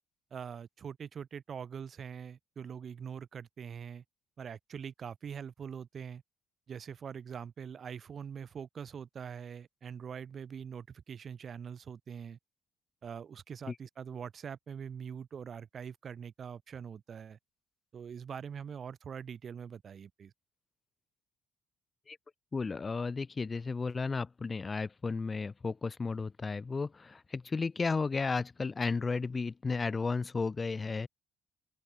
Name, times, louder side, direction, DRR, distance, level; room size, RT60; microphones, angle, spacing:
voice 1, 0.3-4.0 4.4-6.2 6.7-12.4 13.0-17.4 17.9-20.3, right 7 dB, 45° right, 3.0 m, -43 dB
voice 2, 22.5-31.1, left 4 dB, 30° left, 0.9 m, -33 dB
open air
figure-of-eight pair, 45°, 0 cm